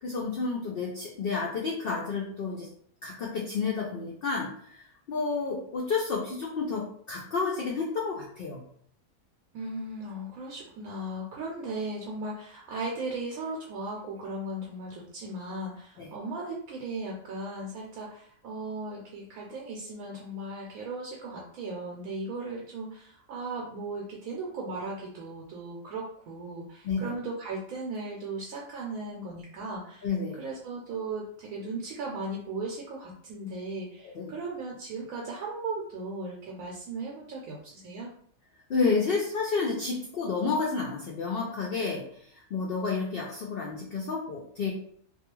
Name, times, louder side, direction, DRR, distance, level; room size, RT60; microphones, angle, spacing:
voice 1, 0.0-2.7 3.0-8.6 16.0-16.1 26.8-27.1 30.0-30.4 34.0-34.3 38.7-44.8, left 4 dB, 70° left, -2 dB, 0.5 m, -30 dB
voice 2, 9.5-30.1 30.4-38.1, right 2 dB, 75° right, -2 dB, 1.0 m, -37 dB
2.3 x 2.3 x 2.9 m, 0.62 s
omnidirectional pair, 1.5 m